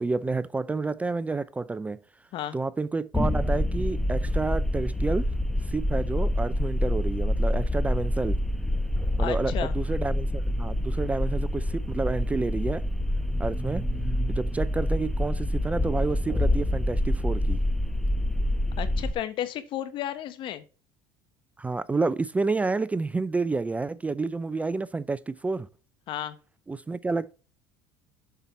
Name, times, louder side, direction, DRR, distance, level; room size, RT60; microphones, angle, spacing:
voice 1, 0.0-2.0 2.5-5.2 5.6-8.4 9.2-12.9 13.4-13.8 14.3-17.6 21.6-25.7 26.7-27.3, right 3 dB, 15° right, 0.3 m, -29 dB
sound 1, 3.1-19.1, left 1 dB, 5° left, 1.0 m, -27 dB
voice 2, 9.2-9.7 18.8-20.6 26.1-26.4, left 11 dB, 55° left, 1.2 m, -33 dB
7.2 x 5.6 x 4.2 m
hypercardioid pair, 85°, 10 cm